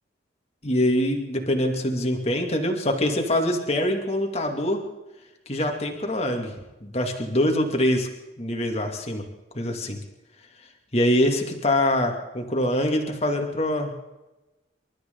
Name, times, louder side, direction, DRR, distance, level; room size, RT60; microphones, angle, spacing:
voice 1, 0.6-4.8 5.5-6.5 6.8-8.1 8.4-9.3 9.5-10.0 10.9-13.9, left 1 dB, 30° left, 3 dB, 2.5 m, -24 dB
28.0 x 13.0 x 3.9 m, 1.0 s
head